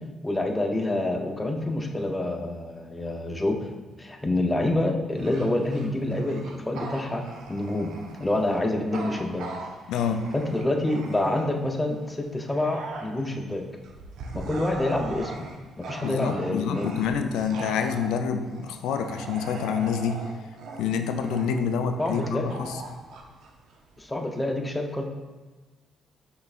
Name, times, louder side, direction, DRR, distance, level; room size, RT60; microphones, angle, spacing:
voice 1, 0.2-3.6 4.0-7.9 8.2-9.5 10.3-13.6 14.3-15.5 15.8-17.0 22.0-22.6 24.0-25.0, left 1 dB, 15° left, 3 dB, 0.6 m, -27 dB
Bark / Growling, 5.2-11.7 12.2-24.1, right 3 dB, 80° right, 0.6 m, -40 dB
voice 2, 9.9-10.3 16.0-20.2 20.8-22.8, left 6 dB, 90° left, 7 dB, 0.3 m, -27 dB
5.5 x 3.9 x 2.4 m, 1.3 s
cardioid pair, 90°, 0 cm